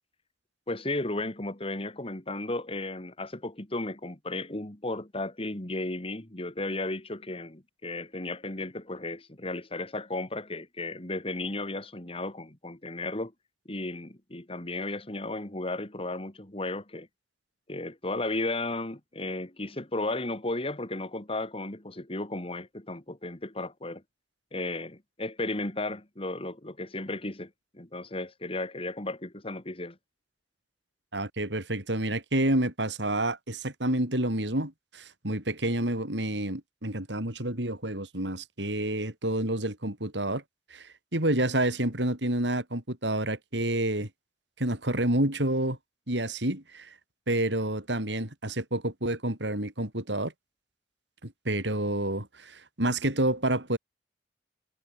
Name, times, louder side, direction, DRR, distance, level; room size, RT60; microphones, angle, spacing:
voice 1, 0.7-13.3 13.7-17.1 17.7-24.0 24.5-30.0, left 2 dB, 35° left, 2.5 m, -34 dB
voice 2, 31.1-40.4 40.7-44.1 44.6-45.8 46.1-46.9 47.3-50.3 51.2-53.8, right 1 dB, 90° right, 7.3 m, -29 dB
head